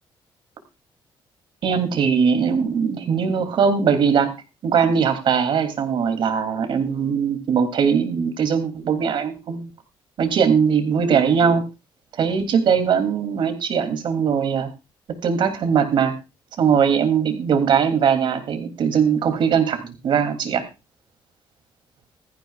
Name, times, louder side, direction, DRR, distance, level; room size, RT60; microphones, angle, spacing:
voice 1, 1.6-4.3 4.6-9.7 10.2-11.6 12.2-14.7 15.2-16.1 16.6-20.7, right 6 dB, 60° right, 8 dB, 2.9 m, -20 dB
16.5 x 14.0 x 2.4 m, 0.27 s
cardioid pair, 120°, 9 cm